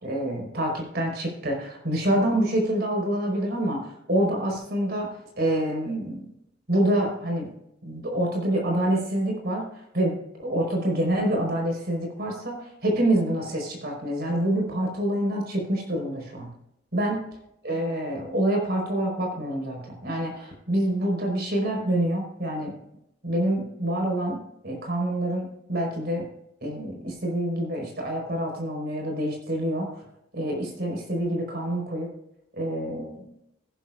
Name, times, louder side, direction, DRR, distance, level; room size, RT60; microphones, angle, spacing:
voice 1, 0.0-5.1 5.4-6.3 6.7-7.5 7.8-9.6 9.9-10.1 10.4-16.5 16.9-17.2 17.6-22.7 23.2-24.4 24.6-26.3 26.6-30.0 30.3-32.1 32.6-33.2, right 1 dB, 50° right, 0 dB, 4.7 m, -26 dB
18.0 x 11.0 x 2.5 m, 0.82 s
head